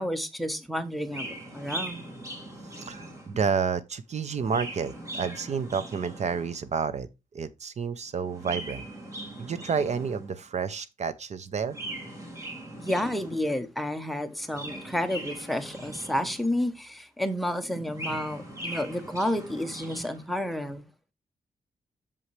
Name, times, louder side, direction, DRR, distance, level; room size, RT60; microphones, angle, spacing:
voice 1, 0.0-2.0 12.8-20.8, left 1 dB, ahead, 1.0 m, -30 dB
Chirp tweet, 1.1-3.5 4.2-6.7 8.2-10.4 11.6-13.5 14.3-16.6 17.7-20.2, right 1 dB, 20° right, 2.8 m, -40 dB
voice 2, 2.6-7.1 7.3-8.8 9.4-11.8, right 6 dB, 50° right, 0.6 m, -30 dB
8.0 x 7.0 x 3.2 m
wide cardioid pair, 135°, 15 cm